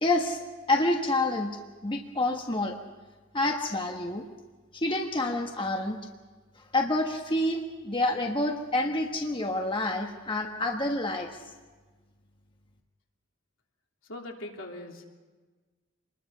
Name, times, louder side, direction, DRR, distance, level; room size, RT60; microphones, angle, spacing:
voice 1, 0.0-0.4 0.7-1.5 1.8-2.8 3.3-4.2 4.7-6.0 6.7-11.3, left 2 dB, 25° left, 2 dB, 1.4 m, -28 dB
voice 2, 14.1-15.1, left 1 dB, 70° left, 1 dB, 3.2 m, -40 dB
27.0 x 21.0 x 5.7 m, 1.3 s
head